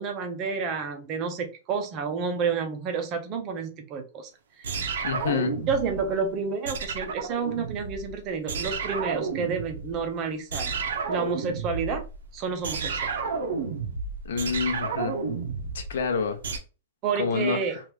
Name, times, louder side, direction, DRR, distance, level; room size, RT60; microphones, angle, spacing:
voice 1, 0.0-4.3 4.6-4.8 5.7-10.8 11.1-12.0 12.3-13.1 17.0-17.8, right 5 dB, 25° right, 0.5 m, -30 dB
sound 1, 4.6-6.2 6.6-8.2 8.5-10.1 10.5-16.6, right 5 dB, 80° right, 0.7 m, -31 dB
voice 2, 5.0-5.6 14.3-15.1 15.7-16.4 17.2-17.6, left 5 dB, 75° left, 0.7 m, -27 dB
3.0 x 2.4 x 3.3 m
supercardioid pair, 170°, 0 cm